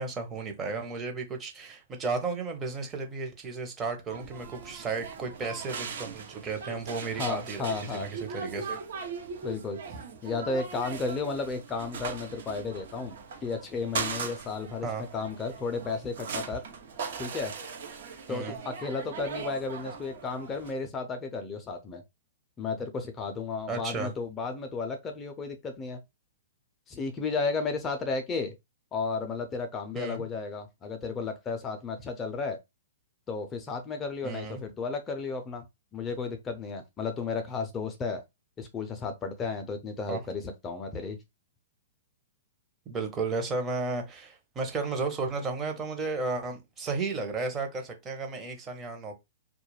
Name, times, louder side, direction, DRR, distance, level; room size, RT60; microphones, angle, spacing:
voice 1, 0.0-8.8 9.9-10.0 14.8-15.0 18.3-18.6 23.7-24.1 29.9-30.2 34.2-34.6 40.1-40.2 42.9-49.1, right 4 dB, 20° right, 0.8 m, -33 dB
sound 1, 4.1-20.7, right 5 dB, 65° right, 0.8 m, -39 dB
voice 2, 7.1-8.1 9.4-9.8 10.2-13.2 13.4-14.9 15.1-16.6 17.2-17.5 18.3-22.0 22.6-26.0 26.9-28.5 28.9-32.6 33.3-35.6 35.9-38.2 38.6-41.2, left 4 dB, 20° left, 0.5 m, -33 dB
2.3 x 2.1 x 3.2 m
hypercardioid pair, 125°, 0 cm